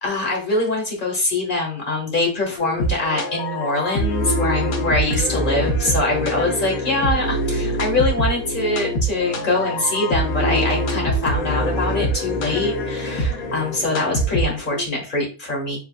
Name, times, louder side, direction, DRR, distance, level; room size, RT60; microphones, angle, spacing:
voice 1, 0.0-15.8, left 2 dB, 35° left, -1 dB, 1.7 m, -23 dB
sound 1, 2.6-14.8, equal, 85° left, 1.4 m, -24 dB
4.7 x 3.9 x 2.3 m, 0.34 s
omnidirectional pair, 1.5 m